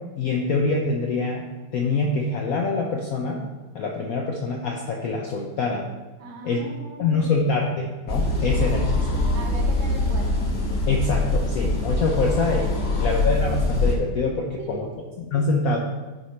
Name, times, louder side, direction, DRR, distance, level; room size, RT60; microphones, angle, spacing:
voice 1, 0.2-1.5 1.7-3.4 3.7-5.9 6.4-6.6 7.0-9.2 10.9-14.9 15.2-15.8, left 3 dB, 70° left, 1 dB, 0.8 m, -25 dB
voice 2, 6.2-7.3 9.3-10.3 14.6-15.0, right 3 dB, 75° right, -1 dB, 2.0 m, -39 dB
sound 1, 8.1-14.0, left 2 dB, 40° left, 1.0 m, -23 dB
10.5 x 4.3 x 3.2 m, 1.3 s
omnidirectional pair, 2.2 m